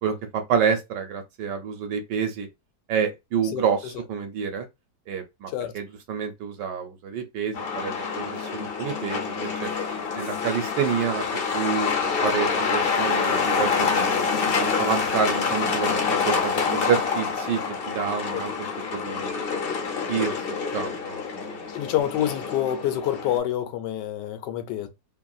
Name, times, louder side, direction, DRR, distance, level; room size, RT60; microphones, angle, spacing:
voice 1, 0.0-2.5 2.9-4.7 5.1-9.7 10.2-14.2 14.6-16.0 16.2-17.6 17.9-18.5 18.9-19.4 20.1-21.7, right 7 dB, 80° right, 1.3 m, -28 dB
Truck, 7.5-23.4, left 5 dB, 65° left, 0.5 m, -26 dB
voice 2, 21.7-24.9, left 11 dB, 85° left, 1.2 m, -27 dB
3.2 x 2.3 x 2.5 m
omnidirectional pair, 1.8 m